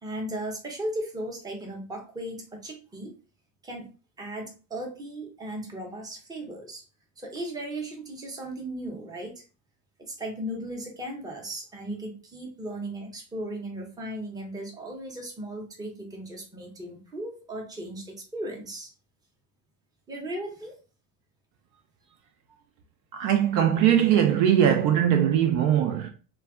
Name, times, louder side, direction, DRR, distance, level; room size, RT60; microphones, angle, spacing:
voice 1, 0.0-3.2 3.6-3.9 4.2-6.8 7.2-9.4 10.0-18.9 20.1-20.7, right 1 dB, 10° right, 0.7 m, -36 dB
voice 2, 23.1-26.1, right 10 dB, 50° right, 0.5 m, -21 dB
2.2 x 2.2 x 3.5 m
cardioid pair, 135°, 40 cm